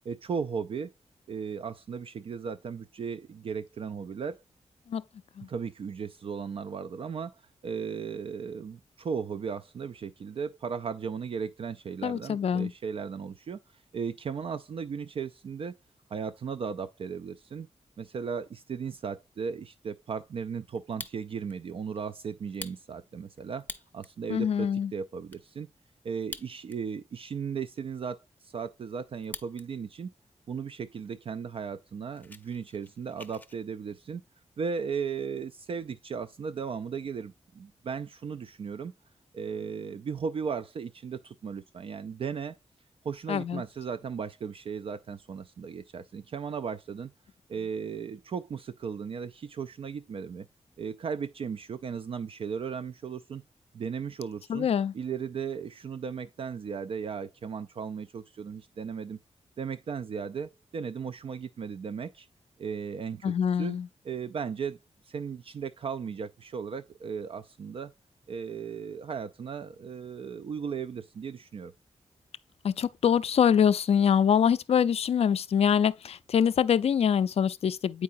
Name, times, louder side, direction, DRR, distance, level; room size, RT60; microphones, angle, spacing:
voice 1, 0.1-0.9 1.3-4.4 5.5-15.7 16.1-17.7 18.0-23.7 23.9-25.7 26.0-30.1 30.5-34.2 34.6-38.9 39.3-42.6 43.0-47.1 47.5-50.5 50.8-53.4 53.7-54.7 54.9-59.2 59.6-62.3 62.6-63.3 63.6-63.8 64.1-64.8 65.0-67.9 68.3-71.7, right 6 dB, 55° right, 0.3 m, -36 dB
voice 2, 12.0-12.7 24.3-24.9 43.3-43.6 54.5-54.9 63.2-63.9 72.6-78.0, left 8 dB, 60° left, 0.4 m, -24 dB
Fire, 20.8-21.6 22.0-22.1 22.5-24.2 24.7-24.8 25.0-25.4 26.1-27.0 27.3-27.4 27.9-29.7 30.0-30.4 31.0-31.1 31.4-31.5 31.8-33.6, left 2 dB, 15° left, 0.6 m, -45 dB
8.4 x 4.7 x 2.5 m
wide cardioid pair, 110°, 12 cm